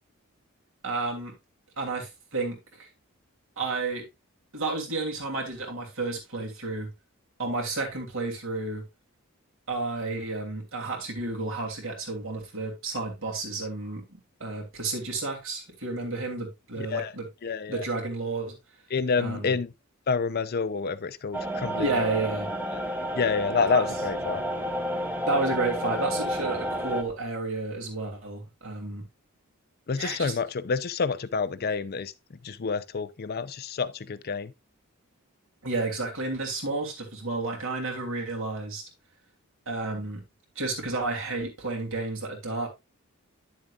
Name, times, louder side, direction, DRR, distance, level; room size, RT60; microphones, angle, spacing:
voice 1, 0.8-1.3 1.8-2.9 3.6-4.0 4.5-6.9 7.4-8.8 9.7-17.3 17.7-18.6 19.2-19.6 21.8-22.5 23.7-23.9 25.3-29.0 30.0-30.3 35.6-38.8 39.7-40.2 40.5-42.7, right 3 dB, 65° right, 2.9 m, -31 dB
voice 2, 16.8-17.1 17.4-17.8 18.9-19.7 20.1-21.9 23.1-24.4 29.9-32.1 32.4-34.5, left 5 dB, 45° left, 0.5 m, -28 dB
sound 1, 21.3-27.0, equal, 10° right, 1.0 m, -31 dB
10.5 x 7.2 x 2.4 m
head